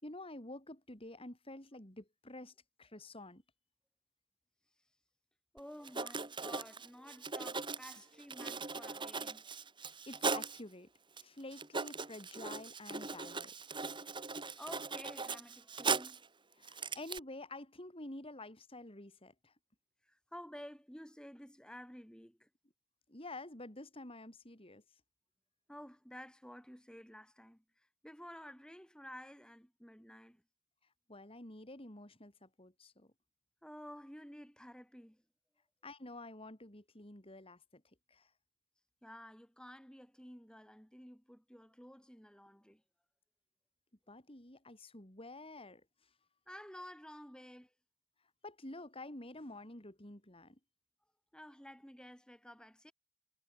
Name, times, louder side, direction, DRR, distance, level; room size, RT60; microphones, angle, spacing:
voice 1, 0.0-3.4 9.8-10.9 11.2-13.6 16.6-19.5 23.1-24.8 31.1-33.1 35.8-37.8 38.1-38.3 44.1-46.1 48.4-50.6, left 2 dB, 25° left, 3.4 m, -49 dB
voice 2, 5.5-9.5 14.1-16.3 20.0-22.5 25.7-30.4 33.6-35.2 39.0-42.8 46.5-47.7 51.3-52.9, equal, 5° left, 6.6 m, -52 dB
Writing, 5.6-5.7 5.8-10.6 11.2-11.3 11.5-16.3 16.6-17.2, right 4 dB, 20° right, 3.4 m, -39 dB
head